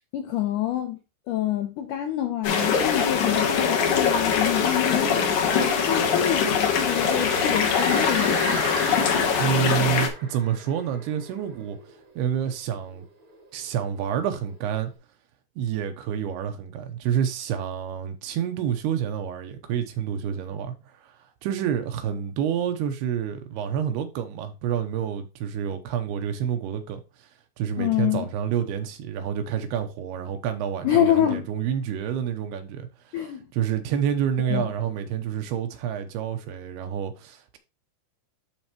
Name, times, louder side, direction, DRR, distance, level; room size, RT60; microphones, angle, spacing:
voice 1, 0.1-1.0 1.3-5.4 5.9-8.7 27.8-28.3 30.8-31.5 33.1-33.4 34.5-34.7, left 11 dB, 85° left, 1.8 m, -26 dB
sound 1, 2.4-10.1, left 6 dB, 65° left, 2.1 m, -23 dB
sound 2, 6.9-12.1 12.5-12.6 12.9-14.5, right 1 dB, 45° right, 1.1 m, -35 dB
voice 2, 9.4-11.8 12.2-13.1 13.5-14.9 15.6-27.3 27.6-37.6, right 9 dB, 80° right, 2.7 m, -28 dB
12.0 x 4.1 x 2.9 m
omnidirectional pair, 4.7 m